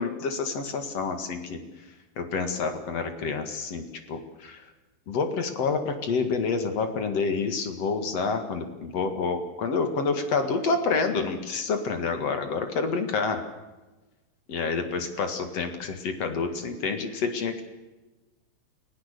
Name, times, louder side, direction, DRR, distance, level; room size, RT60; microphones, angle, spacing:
voice 1, 0.0-1.6 2.2-4.7 5.1-13.5 14.5-17.7, left 4 dB, 45° left, 7 dB, 2.5 m, -28 dB
29.5 x 17.0 x 6.8 m, 1.1 s
omnidirectional pair, 4.7 m